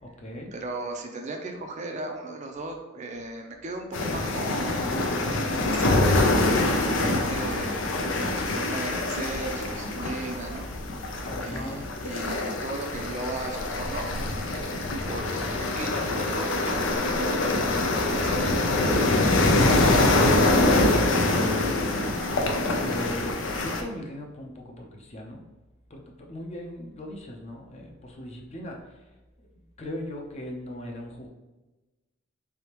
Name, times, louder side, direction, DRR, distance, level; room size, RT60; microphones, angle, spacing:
voice 1, 0.0-0.5 11.2-11.8 20.7-21.5 22.7-25.4 25.9-29.0 29.8-31.3, left 1 dB, 35° left, 0 dB, 0.6 m, -38 dB
voice 2, 0.5-4.9 5.3-6.5 6.9-8.0 8.3-10.7 11.4-14.1 14.4-15.3 15.6-18.5, right 2 dB, 40° right, 3 dB, 0.5 m, -37 dB
sound 1, 3.9-23.8, left 2 dB, 80° left, 0.5 m, -24 dB
3.9 x 3.5 x 2.9 m, 1.1 s
head